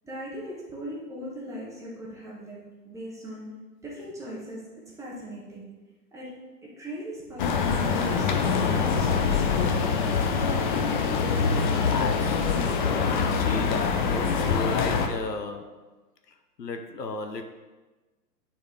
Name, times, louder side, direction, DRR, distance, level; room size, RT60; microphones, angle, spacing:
voice 1, 0.0-2.6 2.8-3.5 3.8-4.6 5.0-5.6 6.1-6.3 6.6-8.4 8.7-9.6, equal, 5° right, -5 dB, 1.5 m, -39 dB
sound 1, 7.4-15.1, left 5 dB, 30° left, 0.5 m, -24 dB
voice 2, 11.8-12.5 13.0-15.7 16.6-17.4, left 4 dB, 80° left, 6 dB, 0.9 m, -33 dB
9.3 x 4.5 x 3.8 m, 1.2 s
figure-of-eight pair, 120°, 48 cm